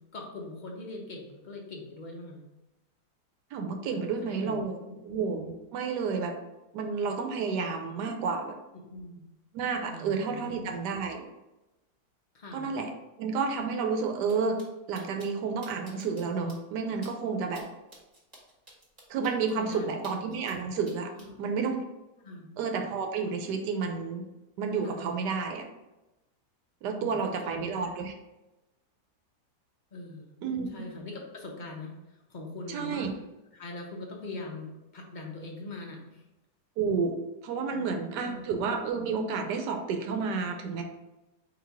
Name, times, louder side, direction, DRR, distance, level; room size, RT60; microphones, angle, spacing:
voice 1, 0.1-2.4 3.9-4.6 4.8-5.0 8.9-9.2 9.9-10.7 12.3-12.7 19.6-19.9 21.2-21.4 22.2-22.5 24.8-25.0 26.9-27.7 29.9-30.3 30.7-33.1 33.5-36.2 37.7-38.4, left 2 dB, 55° left, -1 dB, 0.5 m, -42 dB
voice 2, 3.5-6.3 6.7-8.5 9.5-11.2 12.5-12.9 13.2-14.6 14.9-17.6 19.1-21.1 21.4-21.8 22.6-24.2 24.6-25.6 26.8-28.1 30.4-30.8 32.7-33.1 36.8-37.2 37.4-40.8, right 5 dB, 80° right, 5 dB, 1.2 m, -30 dB
sound 1, 14.2-14.3 14.6-14.7 14.9-15.3 15.6-16.2 16.5-16.6 17.0-17.1 17.5-17.6 17.9-20.6 20.8-21.3, right 1 dB, 25° right, 1.2 m, -51 dB
4.0 x 2.9 x 4.6 m, 1.0 s
omnidirectional pair, 1.8 m